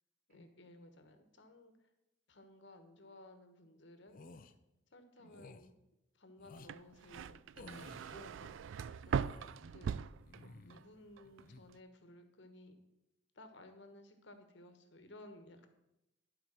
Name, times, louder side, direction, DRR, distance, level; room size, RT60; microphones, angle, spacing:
voice 1, 0.3-1.7 2.3-4.3 4.9-5.7 6.1-7.4 8.1-8.8 9.1-9.9 10.6-12.8 13.3-15.7, left 1 dB, 65° left, 7 dB, 1.3 m, -57 dB
sound 1, 4.1-4.5 5.3-5.7 6.4-6.7 7.6-8.2 8.9-9.6 10.2-10.9 11.2-11.6, left 3 dB, 45° left, 0.6 m, -55 dB
sound 2, 6.6-10.8 11.2-11.7, right 7 dB, 75° right, 0.3 m, -40 dB
voice 2, 7.5-8.7 9.6-9.8, equal, 45° right, -3 dB, 4.2 m, -60 dB
12.0 x 4.9 x 7.5 m, 0.90 s
head